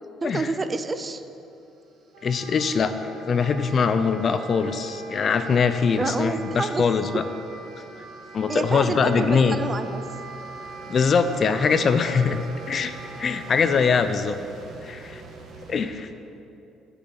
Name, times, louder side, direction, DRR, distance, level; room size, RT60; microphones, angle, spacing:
voice 1, 0.2-1.2 5.9-6.9 7.1-7.2 8.5-10.0 14.2-14.3, right 3 dB, 25° right, 10 dB, 0.4 m, -28 dB
sound 1, 1.2-15.9, right 3 dB, 55° right, 1.5 m, -46 dB
Wind instrument woodwind instrument, 2.1-13.9, right 4 dB, 90° right, 2.6 m, -42 dB
voice 2, 2.2-2.9 3.3-7.2 8.3-9.6 10.9-12.4 12.7-12.9 13.2-14.4 14.8-15.2 15.7-16.1, left 5 dB, 40° left, 10 dB, 0.5 m, -22 dB
10.0 x 6.9 x 5.9 m, 2.8 s
cardioid pair, 120°, 0 cm